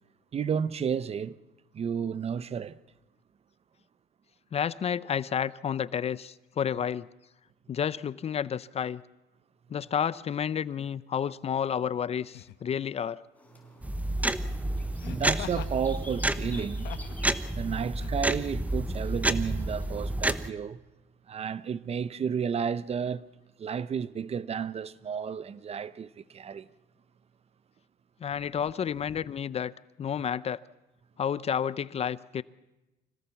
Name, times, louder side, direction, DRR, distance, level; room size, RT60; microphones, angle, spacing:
voice 1, 0.3-1.4 1.7-2.8 13.6-13.7 15.0-16.9 17.5-20.8 21.3-23.3 23.6-26.7, right 7 dB, 35° right, 0.9 m, -32 dB
voice 2, 4.5-7.1 7.7-9.0 9.7-13.2 28.2-29.7 30.0-30.6 31.2-32.4, left 8 dB, 40° left, 0.6 m, -30 dB
Laughter, 10.8-11.0 12.3-12.7 15.0-15.8 16.4-17.2 18.0-18.1, left 14 dB, 80° left, 1.1 m, -43 dB
sound 1, 13.3-20.2, left 2 dB, 10° left, 5.1 m, -52 dB
sound 2, 13.8-20.5, right 1 dB, 10° right, 1.0 m, -30 dB
25.5 x 17.0 x 7.1 m
cardioid pair, 105°, 17 cm